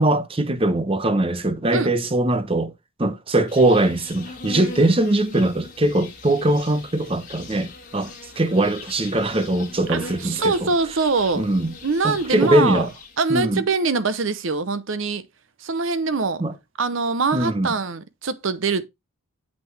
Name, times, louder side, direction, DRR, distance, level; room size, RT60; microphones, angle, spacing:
voice 1, 0.0-2.7 3.0-10.7 11.4-11.7 12.0-12.9 13.3-13.6 16.4-16.5 17.3-17.7, right 1 dB, 25° right, 0.8 m, -21 dB
Insect, 3.5-13.3, left 3 dB, 40° left, 2.1 m, -41 dB
voice 2, 9.9-11.5 11.8-12.8 13.2-15.2 15.6-16.4 16.8-18.8, right 4 dB, 65° right, 0.7 m, -23 dB
7.7 x 5.8 x 3.3 m
head